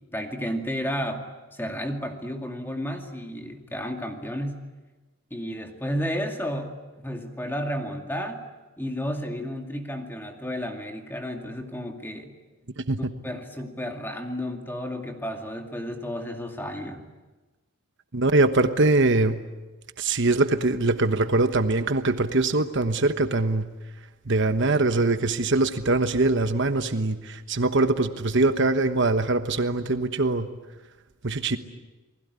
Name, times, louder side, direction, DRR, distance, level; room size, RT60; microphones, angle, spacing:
voice 1, 0.1-1.2 1.5-4.6 5.3-8.4 8.8-12.3 13.2-17.0, equal, 10° left, 4 dB, 2.3 m, -32 dB
voice 2, 18.1-19.4 20.0-23.7 24.3-30.5 31.2-31.6, right 2 dB, 55° right, 9 dB, 1.2 m, -22 dB
29.0 x 20.0 x 9.7 m, 1.2 s
head